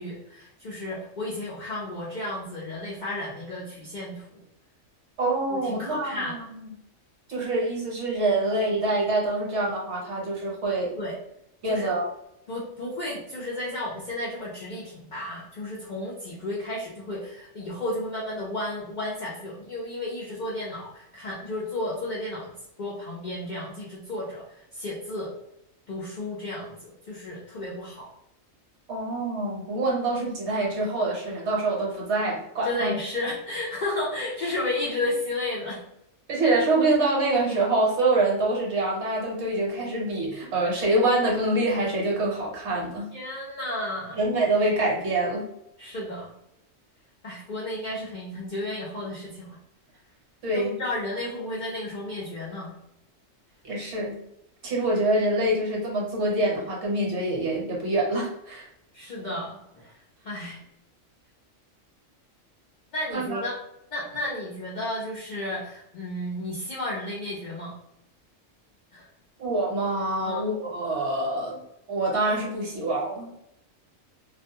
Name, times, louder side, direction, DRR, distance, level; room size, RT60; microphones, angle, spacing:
voice 1, 0.0-4.4 5.5-6.3 10.9-11.1 11.7-11.9 12.5-22.5 22.8-24.4 24.7-25.3 25.9-26.8 27.1-28.1 32.6-35.8 43.1-44.2 45.8-46.3 47.2-49.6 50.5-52.7 58.9-59.9 60.2-60.6 62.9-63.6 63.9-67.7 68.9-69.1 70.2-70.4, left 1 dB, 60° left, -5 dB, 0.4 m, -33 dB
voice 2, 5.2-6.7 7.3-10.9 11.6-12.1 28.9-32.9 36.3-43.1 44.2-45.4 50.4-50.7 53.6-54.1 54.6-58.7 63.1-63.4 69.4-71.6 71.9-73.3, right 2 dB, 60° right, -3 dB, 1.0 m, -25 dB
2.4 x 2.1 x 2.7 m, 0.81 s
omnidirectional pair, 1.4 m